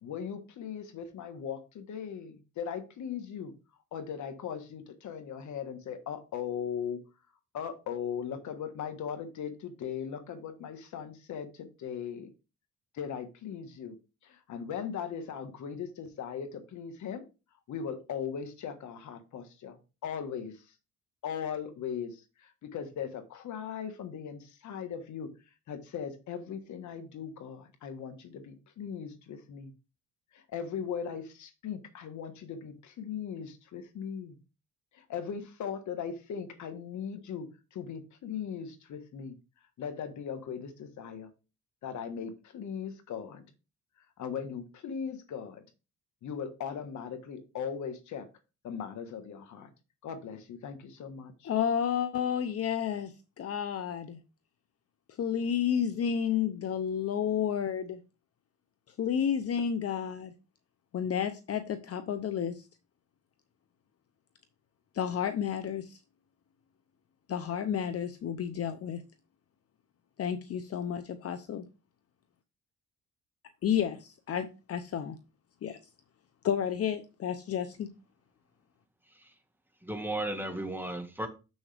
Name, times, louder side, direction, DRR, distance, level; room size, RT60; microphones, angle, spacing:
voice 1, 0.0-3.5 3.9-7.0 7.5-12.3 12.9-14.0 14.2-17.2 17.7-20.7 21.2-25.3 25.7-29.7 30.3-34.4 34.9-39.4 39.8-41.3 41.8-43.4 44.2-45.6 46.2-48.3 48.6-49.7 50.0-51.5, left 7 dB, 70° left, 1.5 m, -39 dB
voice 2, 51.4-54.2 55.2-58.0 59.0-60.3 60.9-62.7 64.9-66.0 67.3-69.0 70.2-71.7 73.6-75.2 75.6-75.8 76.4-77.9, left 8 dB, 50° left, 0.8 m, -31 dB
voice 3, 79.8-81.3, right 1 dB, 5° right, 1.7 m, -35 dB
7.2 x 6.3 x 3.4 m
cardioid pair, 90°, 30 cm